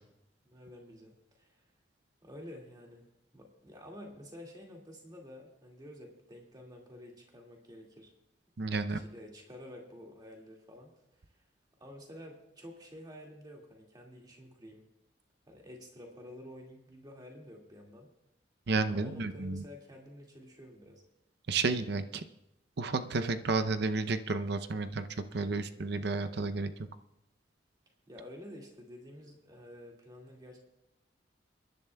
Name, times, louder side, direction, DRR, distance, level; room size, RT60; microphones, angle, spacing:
voice 1, 0.5-1.6 2.2-3.0 3.3-8.1 8.7-10.9 11.3-11.4 11.8-14.8 15.5-18.1 18.8-21.0 28.1-30.6, left 1 dB, 25° right, 0 dB, 2.1 m, -50 dB
voice 2, 8.6-9.0 18.7-19.6 21.5-22.2 22.8-25.1 25.3-26.7, right 3 dB, 65° right, 10 dB, 0.6 m, -31 dB
29.0 x 10.5 x 2.3 m, 0.86 s
head